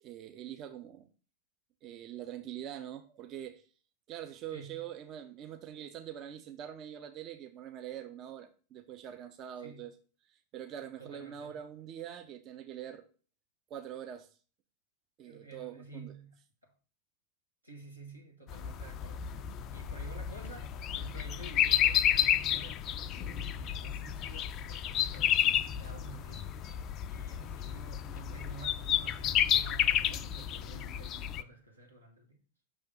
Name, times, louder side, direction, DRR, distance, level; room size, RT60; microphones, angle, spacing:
voice 1, 0.0-1.1 1.8-3.6 4.1-9.9 10.3-13.0 13.7-14.3 15.2-16.1, right 10 dB, 35° right, 0.5 m, -44 dB
voice 2, 4.5-4.9 9.6-9.8 11.0-11.5 15.2-16.4 16.6-16.7 17.6-19.4 19.7-26.5 27.0-32.4, right 3 dB, 85° right, 1.3 m, -50 dB
sound 1, 18.5-31.4, left 10 dB, 35° left, 0.3 m, -31 dB
6.0 x 3.4 x 5.3 m
figure-of-eight pair, 90°, 0 cm